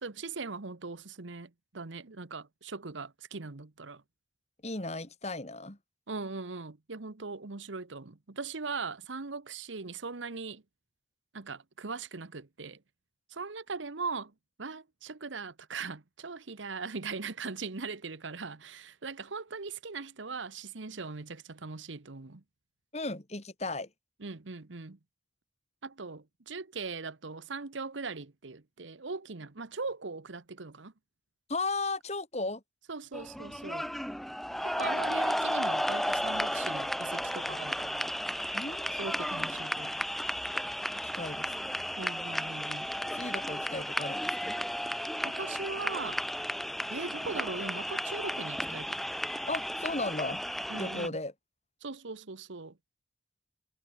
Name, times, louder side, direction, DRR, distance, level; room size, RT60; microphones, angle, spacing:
voice 1, 0.0-4.0 6.1-10.6 11.3-12.8 13.3-14.3 14.6-22.4 24.2-25.0 25.8-30.9 32.9-33.9 34.6-38.1 39.0-40.0 42.0-42.9 45.2-46.2 46.9-49.0 50.7-51.2 51.8-52.8, right 4 dB, 80° right, 1.1 m, -40 dB
voice 2, 4.6-5.8 22.9-23.9 31.5-32.6 38.5-38.9 40.9-41.7 43.1-44.5 49.5-50.4 50.7-51.3, left 2 dB, 35° left, 2.8 m, -35 dB
sound 1, 33.1-51.1, equal, ahead, 0.7 m, -34 dB
head